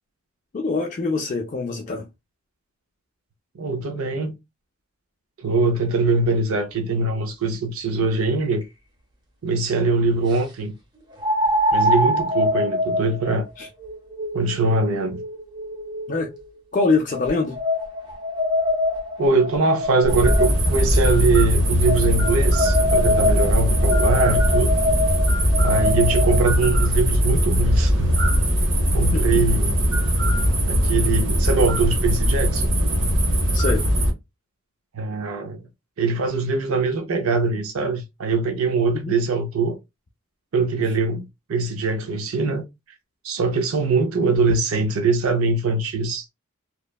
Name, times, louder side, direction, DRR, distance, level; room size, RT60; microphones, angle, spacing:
voice 1, 0.5-2.0 13.6-13.7 16.1-16.3 16.7-17.6 29.1-29.5 33.5-33.8 38.9-39.2, left 3 dB, 35° left, 0.3 m, -24 dB
voice 2, 3.5-4.3 5.4-8.6 9.4-10.8 11.7-13.5 14.3-15.2 19.2-24.8 25.6-28.2 28.9-29.7 30.7-32.7 34.9-35.6 36.0-39.8 40.5-42.6 43.2-46.2, right 3 dB, 85° right, 0.5 m, -22 dB
sound 1, 8.6-8.7 11.2-16.4 17.1-20.8 21.8-26.4, left 1 dB, 20° right, 0.5 m, -24 dB
sound 2, 20.0-34.1, equal, 60° right, 1.0 m, -20 dB
2.9 x 2.0 x 2.2 m
head